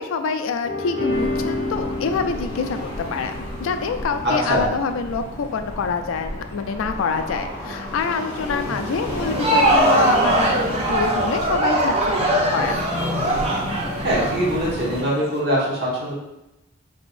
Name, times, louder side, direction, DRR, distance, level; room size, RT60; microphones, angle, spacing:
voice 1, 0.0-12.9, left 5 dB, 80° left, 7 dB, 0.3 m, -26 dB
sound 1, 0.6-4.8 5.6-5.7, left 2 dB, 55° left, 1.3 m, -30 dB
sound 2, 1.1-15.0, equal, 30° left, 0.7 m, -32 dB
voice 2, 4.2-4.6 8.6-8.7 14.0-16.1, equal, 50° right, -5 dB, 1.0 m, -22 dB
Crowd, 9.1-15.0, right 1 dB, 30° right, 0.5 m, -21 dB
3.5 x 3.4 x 2.5 m, 0.93 s
head